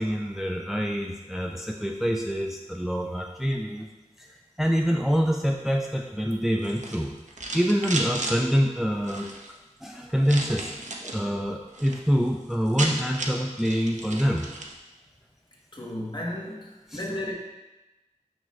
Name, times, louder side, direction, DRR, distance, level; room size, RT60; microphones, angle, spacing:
voice 1, 0.0-3.9 4.2-7.1 7.5-9.3 9.8-14.5 16.9-17.2, equal, 5° right, 1 dB, 0.4 m, -26 dB
sound 1, 6.6-8.4 9.0-9.5 10.2-11.2 11.6-12.0 12.3-12.4 12.5-14.8, right 2 dB, 75° right, 0.7 m, -34 dB
voice 2, 15.7-17.3, left 1 dB, 40° left, -2 dB, 1.3 m, -34 dB
6.2 x 5.4 x 3.1 m, 1.1 s
wide cardioid pair, 50°, 12 cm